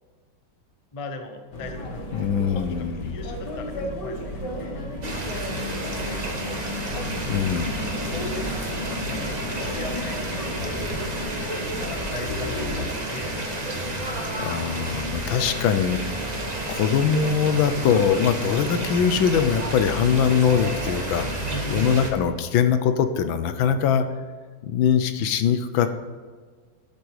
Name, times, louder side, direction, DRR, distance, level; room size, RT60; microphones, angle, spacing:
voice 1, 0.9-4.8 5.5-6.6 6.9-7.5 8.1-10.7 11.9-13.7 21.5-22.1, left 2 dB, 30° left, 5 dB, 0.6 m, -39 dB
sound 1, 1.5-12.9, left 1 dB, 60° left, 2.0 m, -34 dB
voice 2, 2.1-3.2 7.3-7.7 14.4-16.2 16.7-21.4 21.7-24.0 24.6-26.1, left 7 dB, 80° left, 10 dB, 1.5 m, -22 dB
sound 2, 5.0-22.1, right 1 dB, 25° right, 1.1 m, -30 dB
12.0 x 7.7 x 4.8 m, 1.5 s
omnidirectional pair, 2.1 m